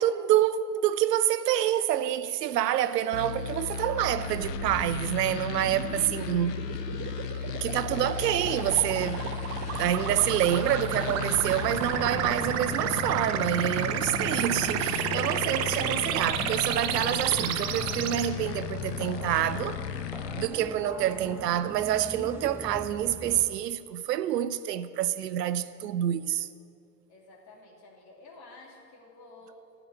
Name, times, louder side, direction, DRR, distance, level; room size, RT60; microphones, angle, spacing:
voice 1, 0.0-6.6 7.6-9.3 9.8-19.8 20.3-26.5, right 11 dB, 80° right, 0.6 m, -27 dB
sound 1, 3.1-20.5, left 9 dB, 80° left, 0.7 m, -35 dB
sound 2, 4.1-18.3, right 10 dB, 35° right, 0.6 m, -32 dB
voice 2, 5.6-6.0 27.1-29.6, left 2 dB, 50° left, 2.5 m, -51 dB
sound 3, 8.5-23.5, right 1 dB, 5° right, 1.0 m, -41 dB
11.5 x 5.0 x 7.9 m
hypercardioid pair, 80°, 48 cm